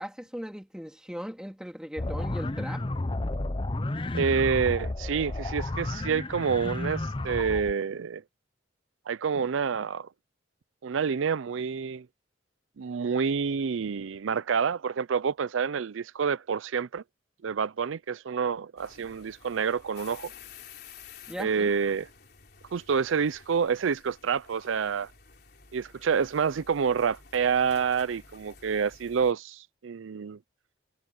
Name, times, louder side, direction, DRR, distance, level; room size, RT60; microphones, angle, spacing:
voice 1, 0.0-2.9 21.3-21.7, equal, 5° right, 3.2 m, -38 dB
sound 1, 2.0-7.7, left 2 dB, 25° left, 0.6 m, -32 dB
voice 2, 4.1-8.2 9.1-10.1 10.8-12.1 12.8-17.0 17.4-20.3 21.4-22.1 22.7-25.1 25.7-30.4, right 6 dB, 85° right, 0.5 m, -28 dB
sound 2, 18.8-29.3, left 6 dB, 55° left, 4.0 m, -52 dB
head